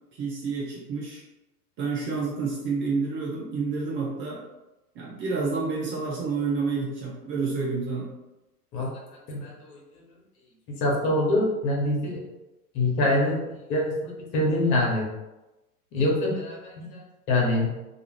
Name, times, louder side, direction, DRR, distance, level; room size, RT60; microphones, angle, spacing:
voice 1, 0.1-1.2 1.8-4.4 4.9-8.1, right 4 dB, 25° right, -4 dB, 0.6 m, -29 dB
voice 2, 9.3-9.8 10.7-12.2 12.7-15.1 15.9-17.0 17.3-17.7, left 1 dB, 45° left, -3 dB, 1.1 m, -25 dB
2.4 x 2.4 x 3.0 m, 1.0 s
hypercardioid pair, 95°, 46 cm